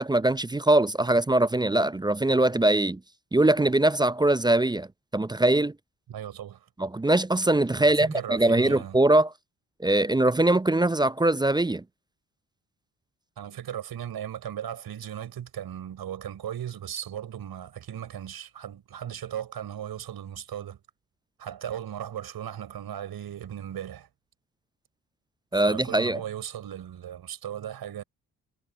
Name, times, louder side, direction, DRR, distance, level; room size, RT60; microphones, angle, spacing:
voice 1, 0.0-3.0 3.3-4.9 5.1-5.7 6.8-9.3 9.8-11.8 25.5-26.2, right 2 dB, 10° right, 0.7 m, -22 dB
voice 2, 6.1-6.7 7.8-9.0 13.4-20.8 21.4-24.1 25.5-28.0, right 10 dB, 55° right, 5.4 m, -37 dB
figure-of-eight pair, 40°, 44 cm